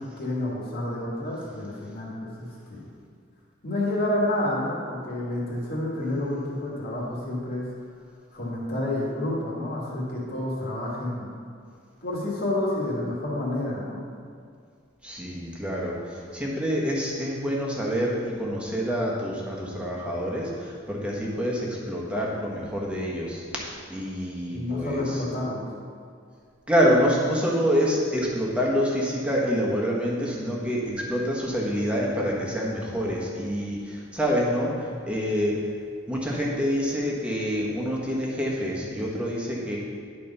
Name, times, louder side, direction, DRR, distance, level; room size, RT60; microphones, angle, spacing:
voice 1, 0.0-2.9 3.6-7.6 8.3-11.3 12.0-14.0 24.5-25.7, left 1 dB, 50° left, -5 dB, 2.0 m, -29 dB
voice 2, 15.0-23.4 23.9-25.2 26.7-35.5 36.1-39.8, equal, 5° right, -4 dB, 1.3 m, -27 dB
11.0 x 4.2 x 5.5 m, 2.2 s
head